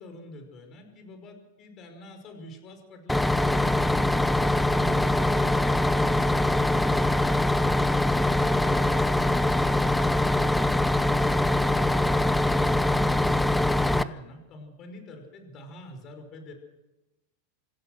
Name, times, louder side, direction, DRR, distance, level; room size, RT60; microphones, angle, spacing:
voice 1, 0.0-4.1 11.5-16.5, left 1 dB, 35° left, 5 dB, 5.3 m, -46 dB
Bus, 3.1-14.0, left 1 dB, 5° left, 0.7 m, -23 dB
26.0 x 16.0 x 6.6 m, 1.0 s
supercardioid pair, 135°, 0 cm